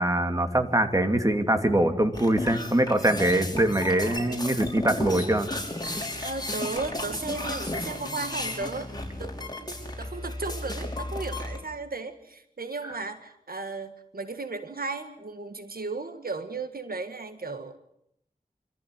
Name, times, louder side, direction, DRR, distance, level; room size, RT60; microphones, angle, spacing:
voice 1, 0.0-5.5, right 1 dB, 20° right, 6 dB, 2.5 m, -23 dB
sound 1, 2.1-11.6, left 1 dB, 25° left, 5.6 m, -34 dB
voice 2, 5.9-8.9 9.2-9.7 10.0-17.8, right 3 dB, 85° right, 9 dB, 1.7 m, -35 dB
26.0 x 14.5 x 9.7 m, 0.76 s
wide cardioid pair, 65°, 15 cm